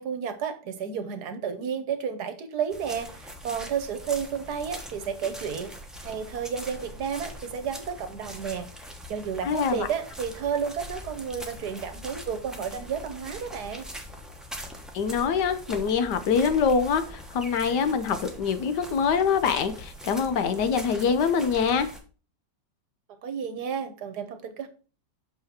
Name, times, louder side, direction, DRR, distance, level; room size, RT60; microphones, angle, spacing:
voice 1, 0.0-5.7 6.0-13.9 23.2-24.7, right 7 dB, 65° right, 9 dB, 1.4 m, -32 dB
sound 1, 2.7-22.0, equal, ahead, 0.8 m, -42 dB
voice 2, 9.4-9.9 14.9-21.9, left 6 dB, 70° left, 10 dB, 1.4 m, -24 dB
6.6 x 5.5 x 4.3 m, 0.36 s
omnidirectional pair, 2.0 m